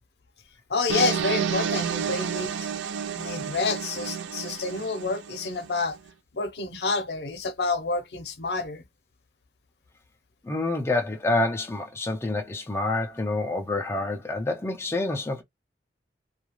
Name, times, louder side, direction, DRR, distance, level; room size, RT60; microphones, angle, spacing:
voice 1, 0.7-2.5 3.1-6.0 6.3-8.8, left 3 dB, 65° left, 0.6 m, -28 dB
sound 1, 0.9-5.8, right 7 dB, 90° right, 0.4 m, -30 dB
voice 2, 10.4-15.4, left 2 dB, 15° left, 0.3 m, -27 dB
2.3 x 2.2 x 3.0 m
head